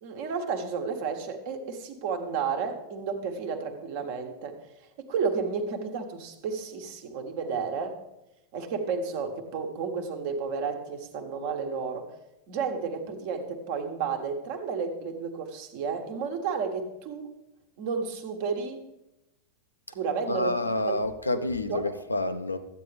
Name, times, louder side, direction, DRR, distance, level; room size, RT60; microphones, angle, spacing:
voice 1, 0.0-4.6 5.0-8.0 8.5-12.1 12.5-17.3 17.8-18.8 19.9-20.5 20.9-21.0 21.3-21.8, right 5 dB, 50° right, 5 dB, 1.1 m, -32 dB
voice 2, 20.3-22.6, left 2 dB, 80° left, 9 dB, 0.6 m, -28 dB
12.5 x 8.5 x 3.3 m, 0.92 s
figure-of-eight pair, 90°, 0 cm